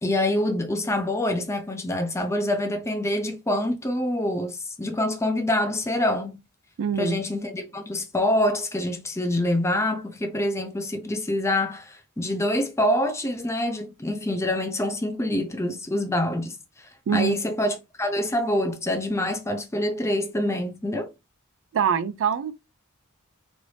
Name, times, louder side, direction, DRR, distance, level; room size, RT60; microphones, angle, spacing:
voice 1, 0.0-6.4 7.0-16.6 17.1-21.1, left 1 dB, 15° left, 0.5 m, -26 dB
voice 2, 6.8-7.2 17.1-17.4 21.7-22.5, right 7 dB, 60° right, 0.3 m, -24 dB
3.1 x 2.6 x 3.1 m
head